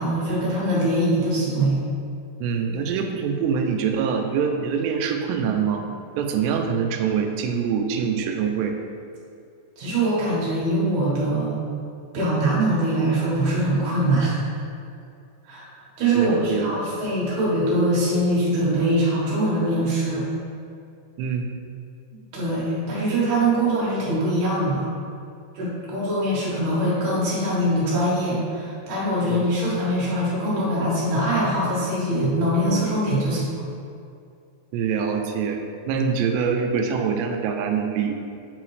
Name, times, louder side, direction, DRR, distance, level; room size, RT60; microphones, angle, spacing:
voice 1, 0.0-1.8 9.8-11.6 12.1-14.4 15.4-15.7 16.0-20.3 22.1-24.9 25.5-33.6, right 1 dB, 60° right, -7 dB, 2.4 m, -23 dB
voice 2, 2.4-5.9 6.2-8.8 16.1-16.8 21.2-21.5 29.3-29.5 34.7-38.2, right 6 dB, 85° right, 4 dB, 2.7 m, -24 dB
7.8 x 4.1 x 3.1 m, 2.4 s
omnidirectional pair, 4.9 m